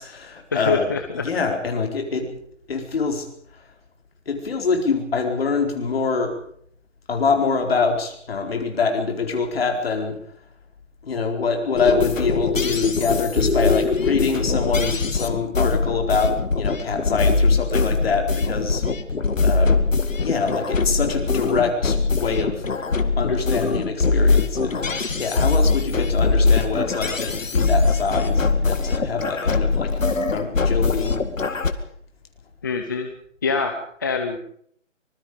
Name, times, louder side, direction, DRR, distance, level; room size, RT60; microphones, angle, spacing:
voice 1, 0.0-0.9 1.1-2.3 2.7-3.3 4.3-6.3 7.1-10.2 11.0-18.9 19.4-19.8 20.2-22.6 23.2-24.9 25.2-29.9 30.3-31.2, left 4 dB, 50° left, 3 dB, 4.6 m, -25 dB
voice 2, 0.5-1.3 32.6-33.1 33.4-34.4, left 4 dB, 15° left, 6 dB, 0.7 m, -25 dB
sound 1, 11.8-31.7, left 4 dB, 85° left, 2.3 m, -22 dB
25.0 x 21.0 x 5.1 m, 0.63 s
hypercardioid pair, 165°, 38 cm